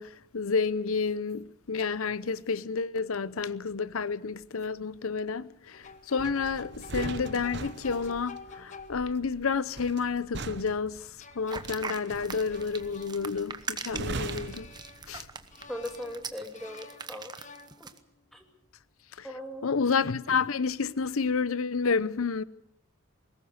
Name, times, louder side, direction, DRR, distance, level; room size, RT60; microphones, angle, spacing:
voice 1, 0.0-11.1 11.4-14.7 15.1-15.3 19.2-19.3 19.6-22.4, left 5 dB, 80° left, 0.7 m, -30 dB
sound 1, 5.7-9.4 11.0-13.7 14.2-15.2 15.5-18.2, left 4 dB, 35° left, 1.1 m, -49 dB
sound 2, 6.2-15.5 15.8-16.1, right 3 dB, 50° right, 0.9 m, -41 dB
sound 3, 11.5-18.0, right 5 dB, 20° right, 1.1 m, -40 dB
voice 2, 15.7-17.3 17.8-17.9 18.3-18.4 19.2-19.8, left 1 dB, ahead, 2.6 m, -39 dB
21.5 x 18.5 x 8.1 m
head